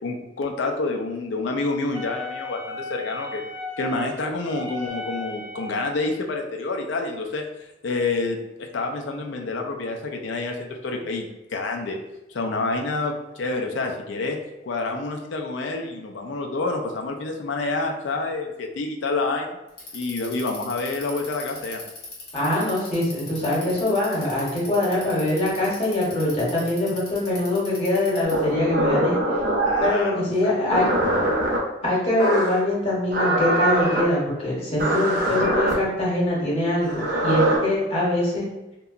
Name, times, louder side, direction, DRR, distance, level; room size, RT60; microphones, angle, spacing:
voice 1, 0.0-3.4 3.8-7.4 7.8-12.0 12.3-14.4 14.6-19.6 19.9-21.8 29.6-30.8, left 3 dB, 85° left, 3 dB, 0.4 m, -28 dB
Wind instrument woodwind instrument, 1.9-6.1, left 2 dB, 25° right, 0.4 m, -36 dB
Bicycle, 19.7-28.5, left 2 dB, 60° left, 0.8 m, -39 dB
voice 2, 22.3-29.2 29.8-30.9 31.8-38.5, left 1 dB, 35° left, -5 dB, 1.0 m, -23 dB
sound 1, 28.3-30.0 30.7-31.6 32.2-32.6 33.1-34.0 34.8-35.7 36.8-37.6, right 1 dB, 60° right, 0.7 m, -22 dB
2.8 x 2.2 x 2.4 m, 0.98 s
head